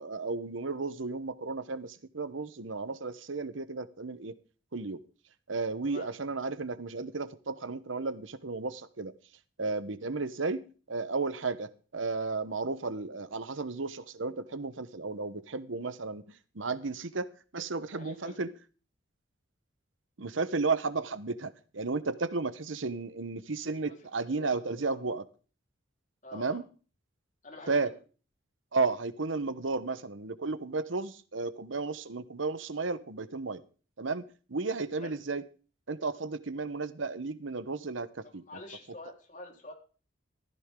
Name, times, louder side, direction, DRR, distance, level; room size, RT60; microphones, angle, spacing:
voice 1, 0.0-4.3 4.7-5.0 5.5-9.1 9.6-18.5 20.2-25.2 26.3-26.6 27.7-27.9 28.7-33.6 34.0-34.2 34.5-35.4 35.9-38.4, right 3 dB, 80° right, 14 dB, 1.0 m, -33 dB
voice 2, 17.9-18.4 23.9-24.0 24.2-24.6 24.9-25.1 26.2-26.6 27.4-27.9 35.0-35.2 38.2-39.7, left 2 dB, 40° left, 2 dB, 4.1 m, -47 dB
15.0 x 14.0 x 3.8 m, 0.37 s
head